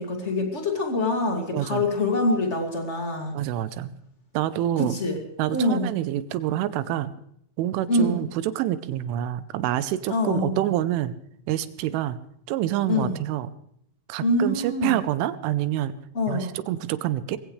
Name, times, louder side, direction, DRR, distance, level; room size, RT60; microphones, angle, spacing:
voice 1, 0.0-3.4 4.7-5.2 5.5-5.9 7.9-8.3 10.1-10.6 12.9-13.2 14.2-15.0 16.1-16.5, left 2 dB, 30° left, 2 dB, 1.2 m, -25 dB
voice 2, 1.5-1.9 3.3-3.9 4.3-5.0 5.4-7.1 7.6-11.1 11.5-12.2 12.5-13.5 14.1-15.9 16.3-17.4, right 13 dB, 85° right, 14 dB, 3.3 m, -27 dB
22.0 x 16.5 x 3.3 m, 0.69 s
omnidirectional pair, 5.5 m